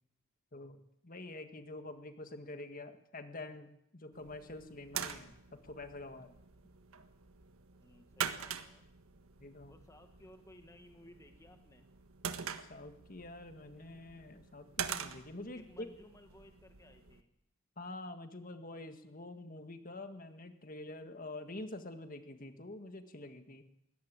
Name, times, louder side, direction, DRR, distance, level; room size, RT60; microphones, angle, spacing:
voice 1, 0.5-6.3 9.4-9.7 12.5-15.9 17.8-23.6, left 2 dB, 40° left, 8 dB, 1.8 m, -47 dB
sound 1, 4.1-17.2, right 7 dB, 80° right, 1.6 m, -45 dB
voice 2, 7.8-8.8 9.7-11.9 15.5-17.3, left 1 dB, 15° left, 5 dB, 1.3 m, -59 dB
21.5 x 17.5 x 8.9 m, 0.79 s
head